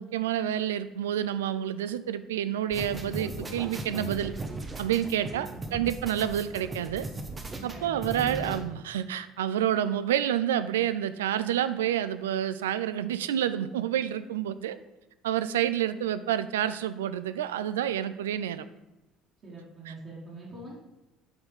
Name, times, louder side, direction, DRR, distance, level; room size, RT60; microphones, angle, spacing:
voice 1, 0.0-4.3 4.8-7.1 7.6-14.8 15.2-18.7, right 10 dB, 75° right, 14 dB, 0.4 m, -29 dB
sound 1, 2.7-8.6, right 2 dB, 25° right, 1.3 m, -38 dB
voice 2, 5.2-5.9 7.5-8.5 19.4-20.8, right 1 dB, 45° right, -6 dB, 3.3 m, -45 dB
9.2 x 4.7 x 5.2 m, 1.0 s
figure-of-eight pair, 60°, 0 cm